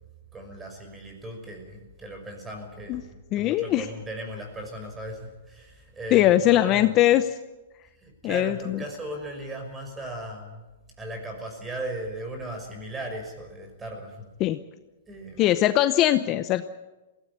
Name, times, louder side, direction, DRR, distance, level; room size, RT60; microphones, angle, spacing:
voice 1, 0.3-6.9 8.0-10.6 11.0-14.3 15.1-15.6, right 1 dB, 15° right, 4 dB, 5.9 m, -37 dB
voice 2, 3.3-3.9 6.1-7.4 8.2-8.8 14.4-14.6 15.4-16.6, left 13 dB, 30° left, 11 dB, 0.8 m, -21 dB
20.5 x 16.5 x 9.9 m, 1.1 s
hypercardioid pair, 145°, 0 cm